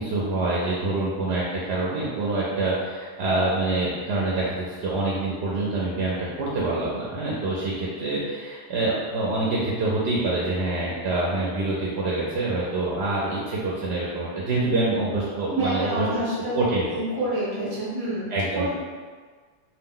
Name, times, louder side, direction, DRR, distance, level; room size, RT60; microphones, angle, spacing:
voice 1, 0.0-16.1 16.5-16.9 18.3-18.7, right 2 dB, 70° right, -6 dB, 0.8 m, -26 dB
voice 2, 15.5-16.5 16.9-18.7, right 1 dB, 25° right, -8 dB, 0.8 m, -28 dB
2.5 x 2.0 x 3.7 m, 1.5 s
omnidirectional pair, 1.2 m